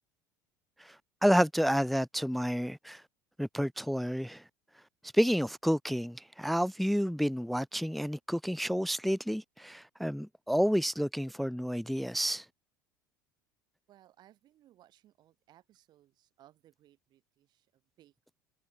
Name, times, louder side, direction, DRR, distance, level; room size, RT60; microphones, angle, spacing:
voice 1, 1.2-3.0 3.4-4.4 5.1-12.4, equal, ahead, 0.5 m, -30 dB
voice 2, 13.9-18.4, right 13 dB, 45° right, 4.8 m, -63 dB
figure-of-eight pair, 70°, 10 cm